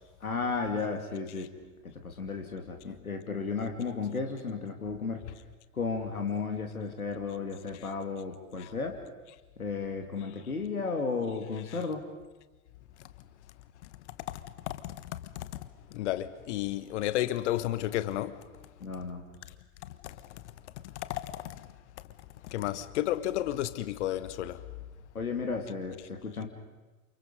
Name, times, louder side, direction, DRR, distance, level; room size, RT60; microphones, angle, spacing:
voice 1, 0.2-1.5 1.9-5.2 5.7-9.0 9.6-12.0 18.8-19.2 25.1-26.5, left 4 dB, 80° left, 2.6 m, -34 dB
voice 2, 14.7-15.5 15.9-18.4 20.0-20.2 21.1-21.7 22.4-24.6, left 14 dB, 55° left, 1.3 m, -32 dB
29.5 x 28.0 x 5.3 m
figure-of-eight pair, 90°, 42 cm